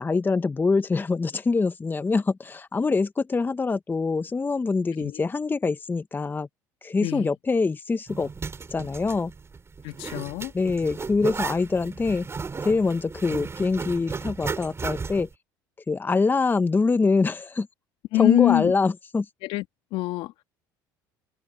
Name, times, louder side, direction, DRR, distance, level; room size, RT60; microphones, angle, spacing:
voice 1, 0.0-6.5 6.8-8.3 8.7-9.3 10.5-12.3 12.6-15.3 15.9-17.7 18.1-19.3, left 4 dB, 20° left, 1.0 m, -24 dB
voice 2, 7.0-7.3 9.8-10.5 18.1-18.7 19.4-19.6 19.9-20.3, left 17 dB, 70° left, 2.3 m, -24 dB
Zipper (clothing), 8.1-15.3, right 5 dB, 30° right, 3.9 m, -35 dB
open air
hypercardioid pair, 75°, 10 cm